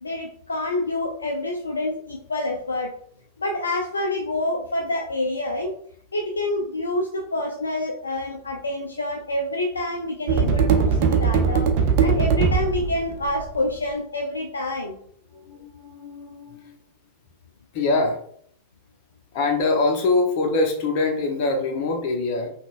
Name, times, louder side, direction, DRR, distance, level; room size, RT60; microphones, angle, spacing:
voice 1, 0.0-2.9 3.4-5.8 6.1-11.7 12.0-15.0, left 2 dB, 75° left, 1 dB, 0.5 m, -27 dB
sound 1, 10.3-13.7, right 6 dB, 45° right, 0.6 m, -20 dB
voice 2, 15.3-16.8 17.7-18.2 19.3-22.5, left 3 dB, 45° left, 2 dB, 1.0 m, -23 dB
5.8 x 2.3 x 2.5 m, 0.62 s
figure-of-eight pair, 90°, 0 cm